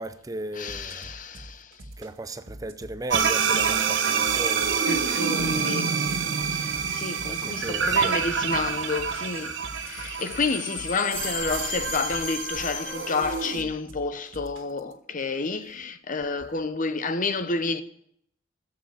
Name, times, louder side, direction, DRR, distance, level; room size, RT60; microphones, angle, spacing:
voice 1, 0.0-1.2 2.0-4.8 7.3-8.1, right 2 dB, 20° right, 0.5 m, -37 dB
voice 2, 0.5-1.6 4.9-5.9 6.9-9.5 9.8-17.8, left 3 dB, 45° left, 0.8 m, -29 dB
sound 1, 0.7-14.9, right 1 dB, 90° right, 1.9 m, -45 dB
sound 2, 3.1-13.6, right 6 dB, 70° right, 1.1 m, -27 dB
sound 3, 9.2-13.8, left 8 dB, 70° left, 1.3 m, -37 dB
14.5 x 7.8 x 7.3 m
head